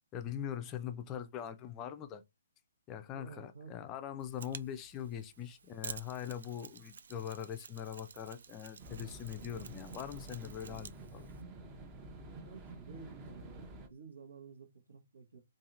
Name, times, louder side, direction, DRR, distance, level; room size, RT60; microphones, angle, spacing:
voice 1, 0.1-2.2 2.9-11.3, left 9 dB, 25° left, 0.4 m, -42 dB
voice 2, 3.1-3.9 12.4-15.4, right 5 dB, 85° right, 1.2 m, -52 dB
Mechanisms, 4.2-11.4, right 6 dB, 65° right, 0.4 m, -51 dB
sound 1, 8.8-13.9, right 2 dB, 25° right, 0.7 m, -49 dB
2.7 x 2.5 x 2.5 m
figure-of-eight pair, 135°, 0 cm